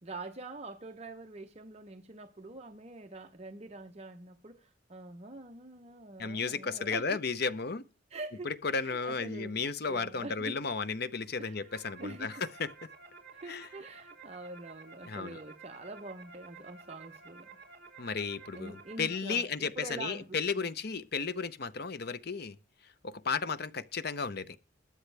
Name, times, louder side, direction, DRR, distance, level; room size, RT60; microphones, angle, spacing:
voice 1, 0.0-7.2 8.1-10.6 11.4-11.6 12.0-12.3 13.4-17.5 18.5-19.5 19.8-20.7, right 2 dB, 30° right, 0.8 m, -45 dB
voice 2, 6.2-7.8 8.4-12.7 13.5-13.7 15.1-15.4 18.0-22.6 23.0-24.6, left 5 dB, 50° left, 0.7 m, -34 dB
sound 1, 11.3-19.2, right 4 dB, 50° right, 4.0 m, -52 dB
21.5 x 7.2 x 3.3 m
head